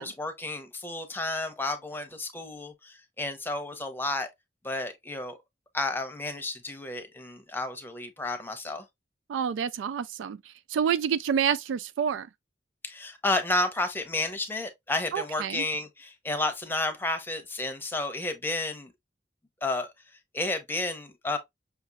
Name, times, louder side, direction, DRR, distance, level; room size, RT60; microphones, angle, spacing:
voice 1, 0.0-4.3 4.6-5.4 5.7-8.8 12.8-18.9 19.6-19.9 20.3-21.4, left 2 dB, 10° left, 0.7 m, -31 dB
voice 2, 9.3-10.4 10.7-12.3 15.1-15.6, right 8 dB, 85° right, 0.3 m, -28 dB
5.7 x 2.8 x 2.2 m
head